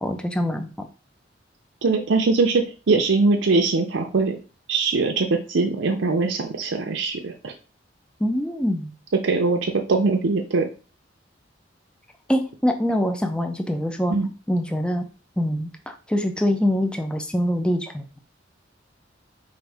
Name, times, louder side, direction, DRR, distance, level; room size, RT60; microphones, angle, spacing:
voice 1, 0.0-0.9 8.2-8.9 12.3-14.2 14.5-15.1 15.4-18.2, equal, 5° left, 5 dB, 0.4 m, -24 dB
voice 2, 1.8-4.4 4.7-7.5 9.2-10.7 14.1-14.3, right 3 dB, 75° right, 2 dB, 0.5 m, -22 dB
4.8 x 2.6 x 3.3 m, 0.35 s
head